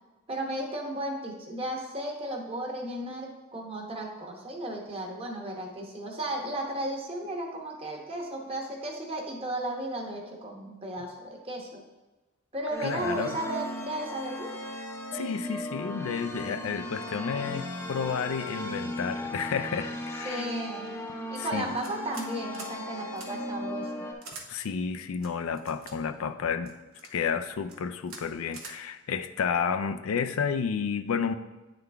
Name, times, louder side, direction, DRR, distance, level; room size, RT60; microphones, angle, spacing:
voice 1, 0.3-11.8 12.5-14.6 20.2-20.9 21.3-24.0, right 1 dB, 30° right, 1 dB, 1.0 m, -34 dB
sound 1, 12.7-24.1, left 1 dB, 10° left, 0.6 m, -37 dB
voice 2, 12.8-13.4 15.1-20.5 21.4-21.7 24.5-26.7 27.1-31.3, left 6 dB, 80° left, 10 dB, 0.4 m, -31 dB
sound 2, 21.8-22.3 22.5-22.7 23.2-23.3 24.2-24.5 25.2-25.9 26.7-27.1 27.6-27.8 28.1-28.2 28.5-28.8, right 4 dB, 85° right, 0.9 m, -44 dB
9.0 x 3.9 x 3.4 m, 1.1 s
head